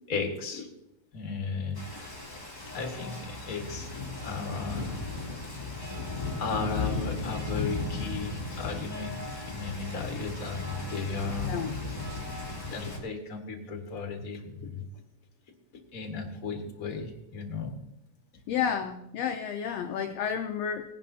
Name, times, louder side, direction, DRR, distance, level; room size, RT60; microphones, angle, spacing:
voice 1, 0.1-0.7 1.1-2.1 2.7-3.9 4.2-5.0 6.4-11.5 12.5-14.8 15.9-17.8, left 4 dB, 35° left, 2 dB, 1.8 m, -35 dB
Rain, 1.7-13.0, left 3 dB, 15° left, 3.1 m, -36 dB
voice 2, 18.5-20.8, left 8 dB, 70° left, 5 dB, 1.6 m, -31 dB
18.5 x 11.0 x 2.8 m, 0.82 s
omnidirectional pair, 3.4 m